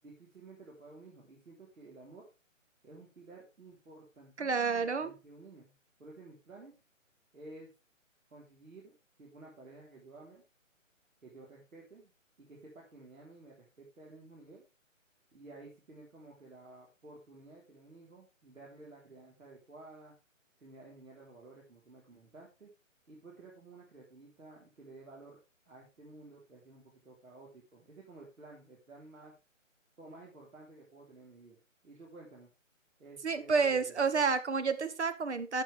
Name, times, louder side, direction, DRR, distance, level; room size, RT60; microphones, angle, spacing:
voice 1, 0.0-2.3 2.8-5.7 6.0-6.8 7.3-7.7 8.3-8.9 9.2-10.4 11.2-12.1 12.4-14.7 15.3-20.1 20.6-22.7 23.1-25.4 25.7-29.3 30.0-31.6 31.8-32.5 33.0-34.0, right 2 dB, 85° right, -3 dB, 4.0 m, -53 dB
voice 2, 4.4-5.1 33.2-35.6, right 5 dB, 55° right, 11 dB, 1.2 m, -30 dB
11.5 x 7.4 x 3.5 m, 0.29 s
hypercardioid pair, 175°, 40 cm